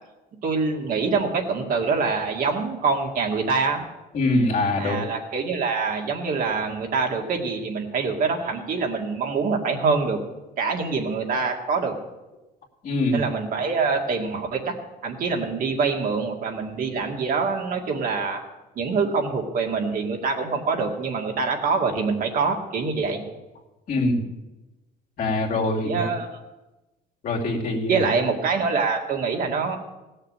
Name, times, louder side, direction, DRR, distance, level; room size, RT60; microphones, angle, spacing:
voice 1, 0.4-3.9 4.8-10.2 10.6-11.9 13.1-14.7 15.0-18.4 18.8-23.2 25.8-26.3 27.9-29.8, right 4 dB, 55° right, 2 dB, 2.2 m, -25 dB
voice 2, 4.1-5.0 12.8-13.2 23.9-24.2 25.2-26.0 27.2-28.1, left 2 dB, 55° left, 0 dB, 2.5 m, -23 dB
17.0 x 6.6 x 8.8 m, 1.1 s
cardioid pair, 110°, 17 cm